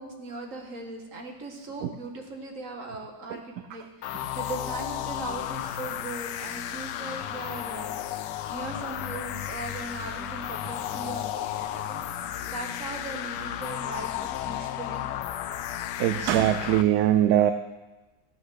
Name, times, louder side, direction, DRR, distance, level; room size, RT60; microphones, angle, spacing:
voice 1, 0.0-8.0 8.5-12.0 12.4-15.1, right 2 dB, 50° right, 2 dB, 2.0 m, -39 dB
sound 1, 4.0-16.8, left 11 dB, 90° left, 1.3 m, -33 dB
voice 2, 16.0-17.5, right 12 dB, 70° right, 10 dB, 1.1 m, -21 dB
14.5 x 8.5 x 6.4 m, 1.2 s
omnidirectional pair, 1.8 m